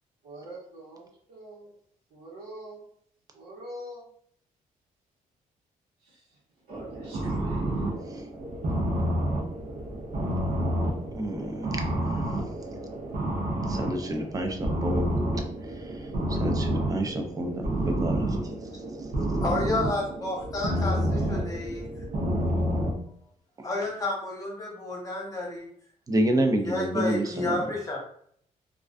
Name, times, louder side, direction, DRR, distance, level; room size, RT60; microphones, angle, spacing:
voice 1, 0.2-1.7 2.1-2.8 3.3-4.1 6.0-6.2 6.7-7.6, right 1 dB, 90° right, -7 dB, 1.0 m, -44 dB
sound 1, 6.7-23.0, right 1 dB, 60° right, 0.7 m, -29 dB
voice 2, 11.1-12.2 13.7-15.1 15.6-18.8 23.6-23.7 26.1-27.6, right 1 dB, 25° right, 4 dB, 0.4 m, -30 dB
voice 3, 19.4-21.9 23.6-25.7 26.6-28.0, left 2 dB, 25° left, -2 dB, 1.0 m, -30 dB
2.3 x 2.2 x 2.4 m, 0.63 s
cardioid pair, 100°, 15 cm